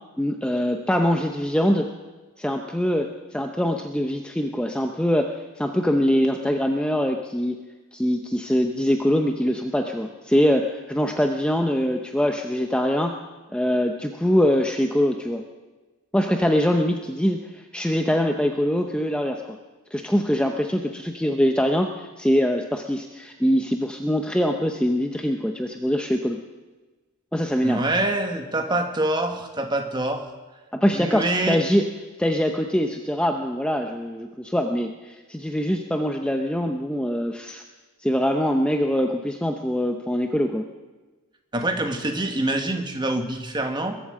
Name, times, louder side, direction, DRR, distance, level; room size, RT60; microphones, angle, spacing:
voice 1, 0.2-1.9 2.4-7.6 7.9-13.1 13.5-15.4 16.1-19.6 19.9-26.4 27.3-27.8 30.7-31.8 32.2-37.6 38.0-40.7, equal, 5° left, 3 dB, 0.7 m, -23 dB
voice 2, 27.6-30.3 30.9-31.6 41.5-44.0, right 1 dB, 20° right, 5 dB, 1.4 m, -25 dB
21.5 x 8.5 x 7.6 m, 1.2 s
head